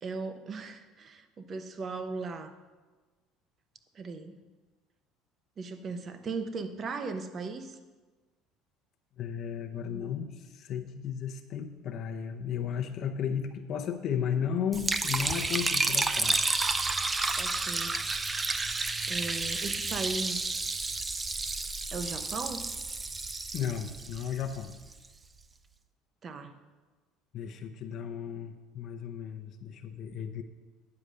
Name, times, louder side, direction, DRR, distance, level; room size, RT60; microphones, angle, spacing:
voice 1, 0.0-2.5 3.9-4.4 5.6-7.8 17.4-18.0 19.1-20.7 21.9-22.7 26.2-26.6, right 4 dB, 35° right, 9 dB, 0.8 m, -37 dB
voice 2, 9.2-16.5 23.5-24.7 27.3-30.4, left 8 dB, 50° left, 5 dB, 0.7 m, -34 dB
Liquid, 14.7-24.9, right 3 dB, 20° right, 0.5 m, -31 dB
9.7 x 4.9 x 6.6 m, 1.3 s
supercardioid pair, 115°, 0 cm